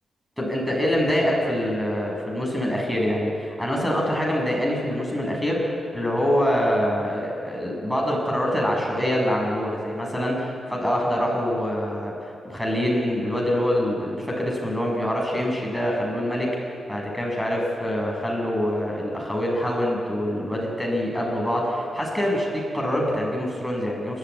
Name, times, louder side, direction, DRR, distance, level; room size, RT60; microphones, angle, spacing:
voice 1, 0.4-24.2, equal, ahead, -2 dB, 7.1 m, -25 dB
28.5 x 13.5 x 9.6 m, 2.5 s
cardioid pair, 105°, 0 cm